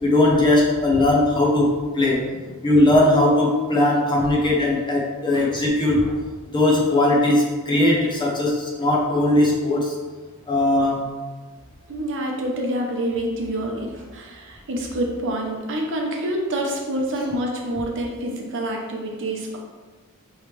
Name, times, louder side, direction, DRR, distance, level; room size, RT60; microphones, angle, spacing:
voice 1, 0.0-2.3 2.6-6.0 6.5-9.9 10.5-11.1, left 1 dB, 20° left, -3 dB, 0.8 m, -19 dB
voice 2, 11.9-19.6, right 1 dB, 55° right, 1 dB, 0.7 m, -27 dB
5.1 x 3.1 x 3.1 m, 1.4 s
head